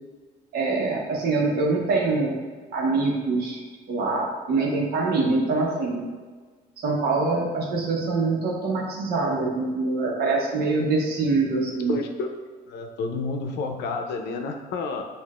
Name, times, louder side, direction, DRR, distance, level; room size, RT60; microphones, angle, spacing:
voice 1, 0.5-2.4 2.7-3.6 3.9-6.1 6.8-11.9, right 3 dB, 65° right, -2 dB, 1.1 m, -24 dB
voice 2, 11.9-12.3 12.7-15.0, left 4 dB, 80° left, 4 dB, 0.6 m, -30 dB
6.6 x 2.5 x 2.4 m, 1.4 s
cardioid pair, 110°, 17 cm